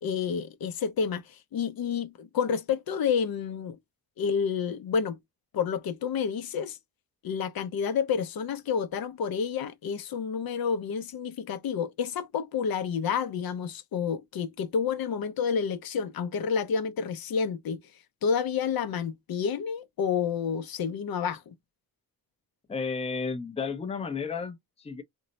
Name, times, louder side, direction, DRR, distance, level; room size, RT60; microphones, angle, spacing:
voice 1, 0.0-3.8 4.2-5.2 5.5-6.8 7.2-17.8 18.2-21.5, left 6 dB, 65° left, 0.5 m, -29 dB
voice 2, 22.7-25.0, left 5 dB, 15° left, 0.5 m, -33 dB
2.6 x 2.1 x 3.9 m
wide cardioid pair, 145°, 38 cm